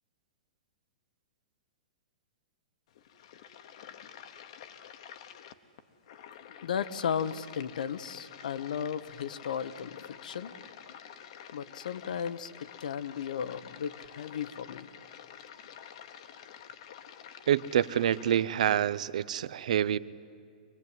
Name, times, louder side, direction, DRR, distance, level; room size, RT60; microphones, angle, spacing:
sound 1, 2.9-18.5, left 9 dB, 45° left, 1.0 m, -49 dB
voice 1, 6.6-10.5 11.5-14.9, left 8 dB, 80° left, 14 dB, 0.9 m, -35 dB
voice 2, 17.5-20.0, right 10 dB, 60° right, 19 dB, 0.5 m, -27 dB
24.5 x 18.5 x 9.4 m, 2.3 s
hypercardioid pair, 170°, 4 cm